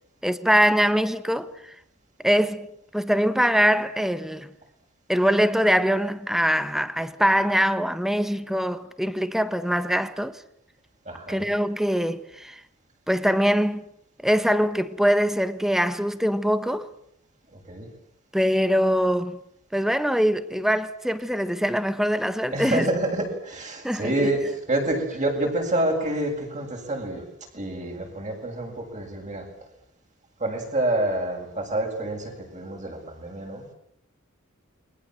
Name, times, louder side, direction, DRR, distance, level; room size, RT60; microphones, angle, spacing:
voice 1, 0.2-1.7 2.2-2.7 2.9-4.5 5.1-10.4 11.3-12.6 13.1-13.8 14.2-16.9 18.3-19.4 19.7-22.9 23.8-24.1, equal, ahead, 1.4 m, -23 dB
voice 2, 11.1-11.5 17.5-17.9 22.5-27.2 27.5-29.5 30.4-33.6, right 1 dB, 35° right, 7.6 m, -27 dB
29.5 x 23.5 x 7.7 m
head